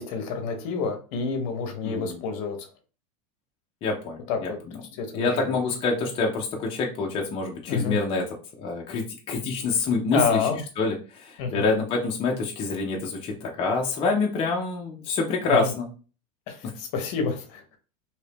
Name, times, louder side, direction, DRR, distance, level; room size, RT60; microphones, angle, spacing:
voice 1, 0.0-2.7 4.3-4.6 5.0-5.6 7.7-8.0 10.1-10.6 11.4-11.6 15.5-15.7 16.5-17.6, left 5 dB, 55° left, 5 dB, 0.8 m, -28 dB
voice 2, 1.8-2.2 3.8-4.5 5.1-8.3 8.6-10.5 10.8-15.9 16.6-16.7, left 3 dB, 30° left, -1 dB, 0.6 m, -26 dB
2.8 x 2.6 x 3.4 m, 0.36 s
supercardioid pair, 150°, 20 cm